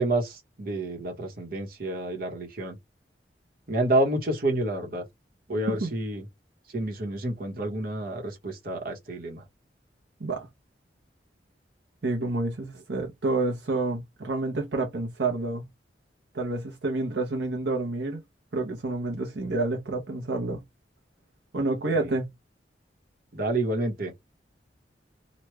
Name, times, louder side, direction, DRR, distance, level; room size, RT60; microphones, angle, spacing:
voice 1, 0.0-2.8 3.7-5.0 5.5-6.2 6.7-9.4 21.9-22.1 23.3-24.1, right 1 dB, 55° right, 1.0 m, -29 dB
voice 2, 12.0-15.6 16.3-18.2 18.5-20.6 21.5-22.3, right 2 dB, 75° right, 0.7 m, -29 dB
3.0 x 2.2 x 3.3 m
head